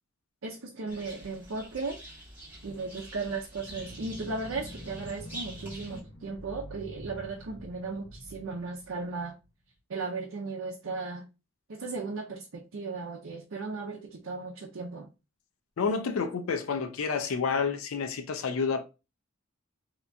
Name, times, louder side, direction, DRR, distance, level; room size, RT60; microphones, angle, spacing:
voice 1, 0.4-2.0 2.6-9.3 9.9-11.3 11.7-15.1, right 3 dB, 70° right, 0.6 m, -36 dB
sound 1, 0.9-6.0, right 1 dB, 10° right, 1.6 m, -46 dB
sound 2, 3.5-9.5, equal, 65° left, 1.3 m, -46 dB
voice 2, 15.8-18.8, left 5 dB, 85° left, 0.5 m, -29 dB
3.4 x 2.8 x 2.6 m
head